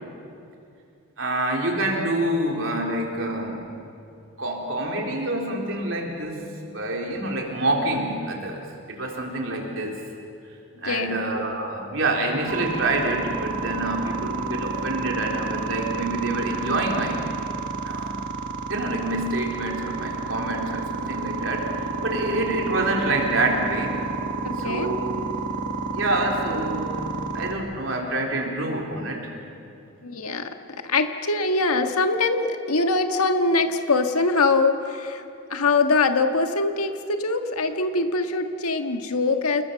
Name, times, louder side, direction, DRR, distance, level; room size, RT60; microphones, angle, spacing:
voice 1, 1.2-3.7 4.4-6.4 6.7-10.0 10.8-17.2 17.8-18.2 18.7-21.6 22.0-24.0 24.6-25.1 25.9-27.1 27.3-29.2, right 2 dB, 60° right, 0 dB, 4.0 m, -27 dB
voice 2, 10.8-11.1 22.3-22.4 24.4-25.0 30.0-35.2 35.5-39.6, left 3 dB, 85° left, 6 dB, 1.7 m, -23 dB
sound 1, 12.5-27.5, right 4 dB, 40° right, 1.9 m, -30 dB
30.0 x 20.5 x 7.0 m, 2.6 s
head